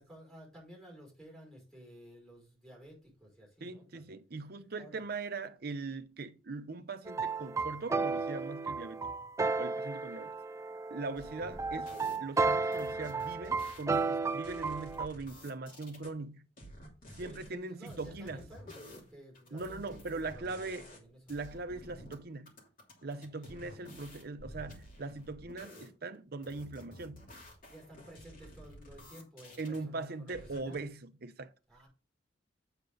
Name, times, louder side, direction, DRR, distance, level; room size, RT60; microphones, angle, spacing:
voice 1, 0.0-4.2 4.8-5.0 8.9-9.2 17.2-21.2 23.3-23.6 27.7-30.8 31.7-31.9, equal, ahead, 5.2 m, -53 dB
voice 2, 3.6-9.0 9.6-10.4 10.9-16.5 17.1-18.5 19.5-20.9 21.3-22.6 23.0-27.3 29.6-31.5, right 3 dB, 55° right, 0.8 m, -41 dB
sound 1, 7.1-15.1, right 4 dB, 15° right, 0.3 m, -33 dB
sound 2, 11.2-12.2 12.7-16.1 16.6-17.5 17.9-21.0 21.3-22.1 22.5-25.9 26.4-29.8 30.3-30.8, equal, 50° left, 2.9 m, -51 dB
8.1 x 6.8 x 3.9 m
head